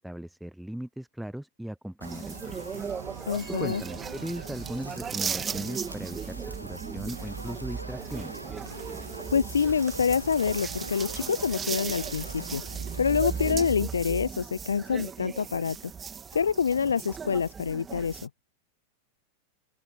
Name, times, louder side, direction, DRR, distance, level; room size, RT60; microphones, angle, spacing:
voice 1, 0.0-2.6 3.6-8.4, right 1 dB, ahead, 0.8 m, -38 dB
sound 1, 2.0-18.3, right 6 dB, 20° right, 3.0 m, -37 dB
Fire, 2.0-13.8, right 1 dB, 90° right, 1.9 m, -44 dB
sound 2, 2.7-12.6, right 14 dB, 55° right, 1.7 m, -50 dB
voice 2, 3.3-3.8 9.3-12.6 13.0-15.8 16.3-18.3, left 6 dB, 70° left, 0.8 m, -26 dB
open air
figure-of-eight pair, 90°, 0 cm